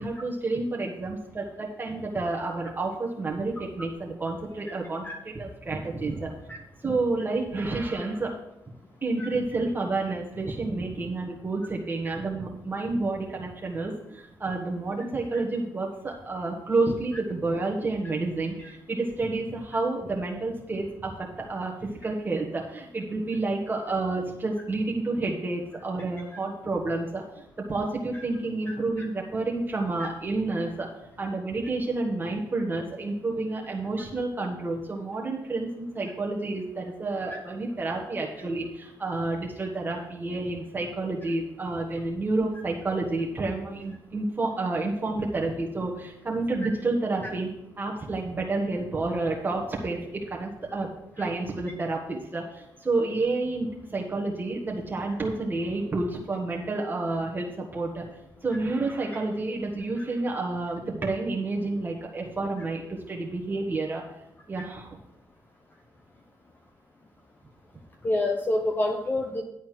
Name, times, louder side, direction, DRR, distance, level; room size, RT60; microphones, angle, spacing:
voice 1, 0.0-6.5 6.8-8.3 9.0-30.9 31.2-47.5 47.8-50.9 51.2-58.0 58.4-64.0 64.5-65.0, right 3 dB, 25° right, -2 dB, 1.5 m, -30 dB
voice 2, 68.0-69.4, left 1 dB, 25° left, 2 dB, 0.9 m, -27 dB
11.0 x 4.2 x 7.6 m, 0.84 s
cardioid pair, 110°, 8 cm